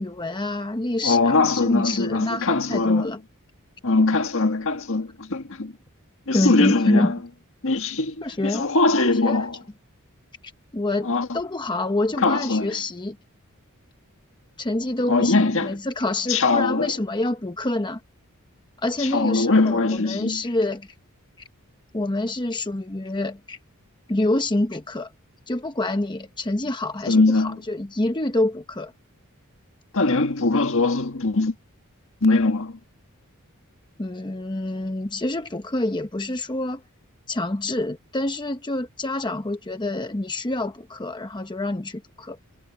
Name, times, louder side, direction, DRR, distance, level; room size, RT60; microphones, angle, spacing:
voice 1, 0.0-3.2 6.3-7.1 8.2-8.7 9.0-9.5 10.7-13.2 14.6-18.0 18.8-20.9 21.9-23.6 24.1-25.1 25.5-28.9 34.0-36.8 37.3-42.4, left 2 dB, 20° left, 0.9 m, -27 dB
voice 2, 1.0-3.1 3.8-5.7 6.3-7.1 7.6-8.3 8.5-9.5 11.1-11.3 12.2-12.7 15.1-15.7 16.3-16.9 19.1-20.4 27.1-27.5 29.9-31.5 32.2-32.7, left 3 dB, 60° left, 1.8 m, -21 dB
head